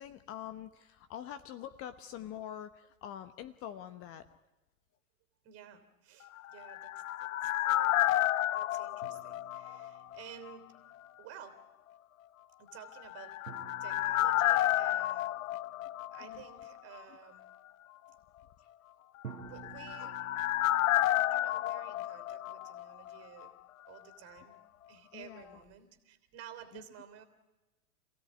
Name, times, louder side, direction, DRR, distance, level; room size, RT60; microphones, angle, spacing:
voice 1, 0.0-4.4 16.2-16.4 18.6-18.7 20.0-20.1 25.1-25.6 26.7-26.8, left 10 dB, 30° left, 12 dB, 1.0 m, -45 dB
voice 2, 5.4-8.2 8.5-10.7 11.2-11.6 12.6-13.4 13.7-15.4 16.0-17.5 19.4-20.2 21.1-23.5 23.9-24.6 24.9-27.2, right 10 dB, 35° right, 9 dB, 3.2 m, -53 dB
sound 1, 6.4-10.2 10.5-10.6 13.0-16.7 16.9-17.0 19.3-23.2 23.4-23.5, left 14 dB, 65° left, 0.7 m, -31 dB
sound 2, 9.0-10.8 13.5-16.3 19.2-23.1, right 6 dB, 90° right, 1.7 m, -53 dB
28.0 x 16.5 x 9.3 m, 1.1 s
hypercardioid pair, 115°, 44 cm